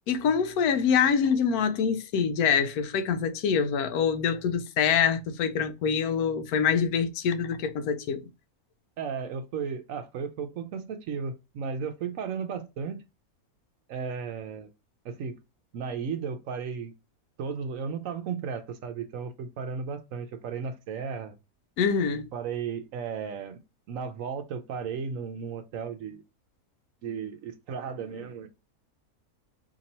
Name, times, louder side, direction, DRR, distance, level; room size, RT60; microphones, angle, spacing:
voice 1, 0.1-8.2 21.8-22.3, left 6 dB, 80° left, 1.1 m, -25 dB
voice 2, 9.0-13.0 13.9-14.7 15.0-15.4 15.7-16.9 17.4-21.4 22.3-23.6 23.9-26.2 27.0-28.5, right 6 dB, 70° right, 0.9 m, -34 dB
2.9 x 2.8 x 4.0 m
omnidirectional pair, 1.6 m